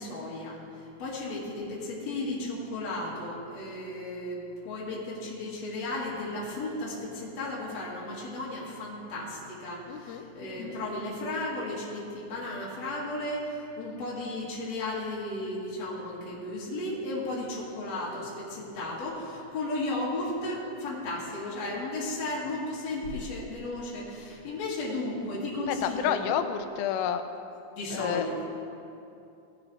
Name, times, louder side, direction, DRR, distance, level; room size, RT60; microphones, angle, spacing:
voice 1, 0.0-26.2 27.8-28.5, left 2 dB, 50° left, -6 dB, 2.8 m, -34 dB
voice 2, 9.9-10.3 25.7-27.2 27.9-28.5, left 9 dB, 85° left, 8 dB, 2.5 m, -30 dB
18.5 x 9.8 x 3.2 m, 2.7 s
omnidirectional pair, 4.2 m